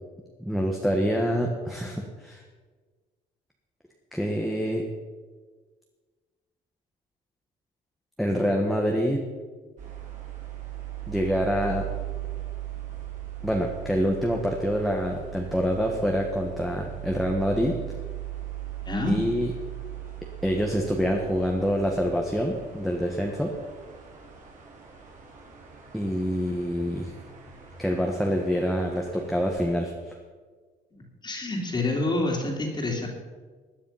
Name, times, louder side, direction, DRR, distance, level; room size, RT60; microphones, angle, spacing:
voice 1, 0.4-2.4 4.1-4.8 8.2-9.3 11.1-11.9 13.4-17.8 19.1-19.5 20.4-23.5 25.9-27.1 27.8-30.1, equal, ahead, 0 dB, 1.7 m, -26 dB
sound 1, 9.8-29.7, right 13 dB, 50° right, 4.4 m, -39 dB
voice 2, 18.8-19.2 30.9-33.1, left 2 dB, 25° left, -1 dB, 3.1 m, -28 dB
17.0 x 9.9 x 5.8 m, 1.4 s
cardioid pair, 110°, 17 cm